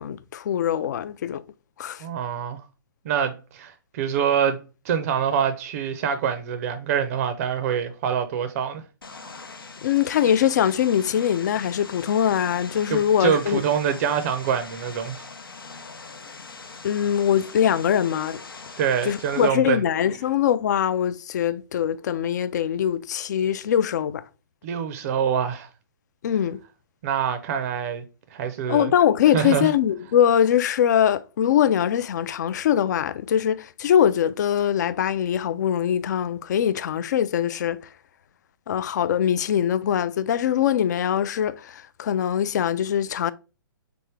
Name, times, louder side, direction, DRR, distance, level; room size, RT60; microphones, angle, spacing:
voice 1, 0.0-1.4 1.8-2.0 9.8-13.6 16.8-18.4 19.0-24.2 26.2-26.6 28.7-37.8 38.7-43.3, left 9 dB, 55° left, 0.3 m, -22 dB
voice 2, 2.0-2.6 3.0-4.6 4.8-8.8 12.9-15.3 18.8-19.8 24.6-25.7 27.0-28.0 28.3-28.9 29.3-29.7, right 8 dB, 45° right, 0.5 m, -25 dB
Vehicle, 9.0-19.5, left 4 dB, 85° left, 0.6 m, -42 dB
3.8 x 3.5 x 3.1 m
figure-of-eight pair, 125°, 12 cm